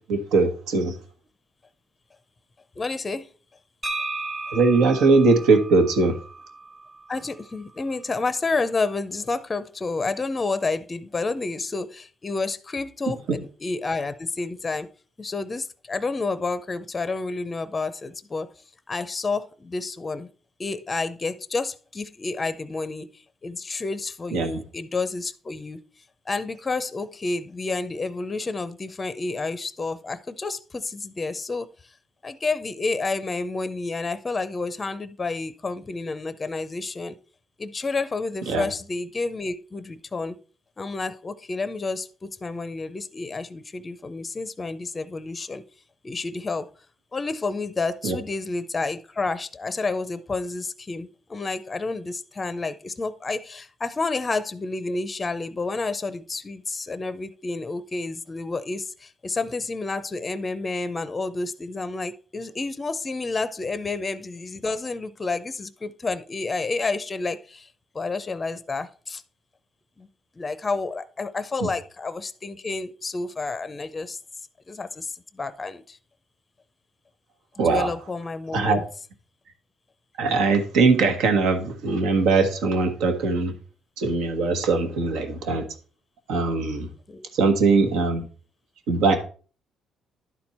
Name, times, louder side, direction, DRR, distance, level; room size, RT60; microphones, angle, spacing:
voice 1, 0.1-0.9 4.5-6.2 24.3-24.6 38.5-38.7 48.0-48.2 71.6-71.7 77.6-77.9 78.5-78.8 80.2-83.5 84.0-85.6 86.3-86.9 87.3-88.3 88.9-89.2, right 4 dB, 90° right, 1.4 m, -21 dB
voice 2, 2.8-3.3 7.1-14.9 15.2-18.5 18.9-20.3 20.6-25.8 26.3-31.9 32.2-37.2 37.6-40.4 40.8-45.6 46.0-46.7 47.1-67.7 67.9-69.2 70.0-70.1 70.4-74.2 74.7-76.0 77.6-78.8 87.1-87.3, left 3 dB, 20° left, 0.5 m, -30 dB
sound 1, 3.8-7.6, right 2 dB, 15° right, 0.7 m, -35 dB
11.0 x 4.4 x 4.2 m
cardioid pair, 125°, 0 cm